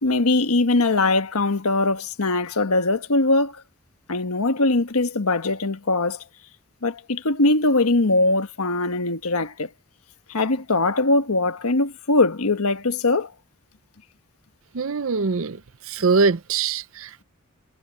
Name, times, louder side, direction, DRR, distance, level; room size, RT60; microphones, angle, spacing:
voice 1, 0.0-3.6 4.1-6.2 6.8-9.7 10.3-13.3, left 2 dB, 85° left, 1.3 m, -21 dB
voice 2, 14.7-15.6 15.9-17.2, right 4 dB, 65° right, 0.6 m, -22 dB
head